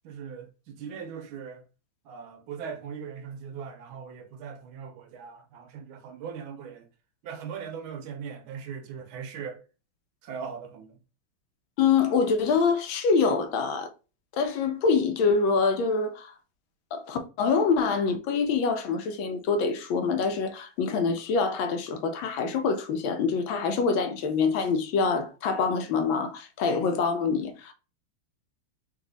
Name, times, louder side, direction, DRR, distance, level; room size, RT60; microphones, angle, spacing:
voice 1, 0.0-1.6 2.0-6.9 7.2-9.6 10.2-11.0, right 6 dB, 85° right, 1.5 m, -39 dB
voice 2, 11.8-13.9 14.3-16.3 16.9-27.7, left 5 dB, 80° left, 1.4 m, -25 dB
4.0 x 2.7 x 3.9 m
omnidirectional pair, 2.2 m